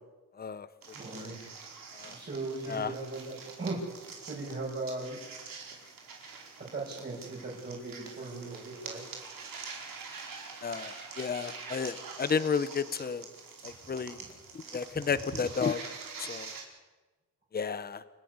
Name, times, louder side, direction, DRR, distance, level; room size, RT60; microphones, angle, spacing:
sound 1, 0.8-16.6, right 5 dB, 80° right, 4.8 m, -45 dB
voice 1, 0.9-1.4 2.0-4.0 4.3-5.2 6.6-9.1 13.7-13.9 14.2-14.3, right 3 dB, 35° right, -6 dB, 6.5 m, -38 dB
voice 2, 10.6-13.2 13.6-14.2 14.7-15.8 16.2-16.5 17.5-18.0, left 6 dB, 30° left, 14 dB, 0.9 m, -32 dB
28.5 x 13.0 x 9.6 m, 1.2 s
wide cardioid pair, 135°, 33 cm